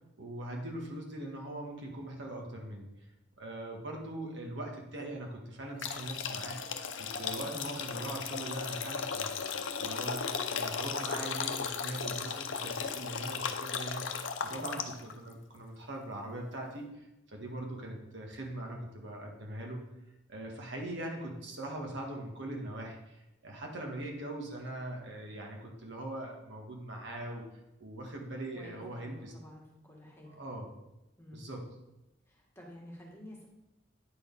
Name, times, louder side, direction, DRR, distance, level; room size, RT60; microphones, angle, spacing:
voice 1, 0.2-2.9 3.4-19.9 20.3-27.4 27.8-29.3 30.2-30.7 31.3-31.7, right 1 dB, 70° right, 0 dB, 1.6 m, -41 dB
sound 1, 5.8-15.1, left 6 dB, 75° left, 0.7 m, -36 dB
voice 2, 14.4-14.8 28.5-30.3 31.2-31.5 32.3-33.5, equal, 15° left, -3 dB, 1.9 m, -51 dB
9.5 x 4.3 x 5.4 m, 0.92 s
head